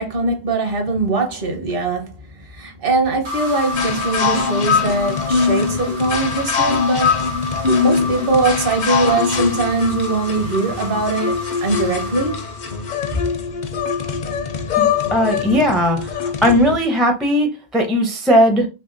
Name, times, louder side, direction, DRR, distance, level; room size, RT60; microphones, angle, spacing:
voice 1, 0.0-7.5 7.8-12.4, right 3 dB, 65° right, 1.1 m, -21 dB
sound 1, 3.2-13.2, left 2 dB, 90° right, 1.2 m, -31 dB
sound 2, 3.7-16.8, left 5 dB, 55° left, 0.6 m, -22 dB
voice 2, 14.8-18.7, equal, ahead, 0.4 m, -17 dB
3.4 x 2.9 x 2.5 m
omnidirectional pair, 1.0 m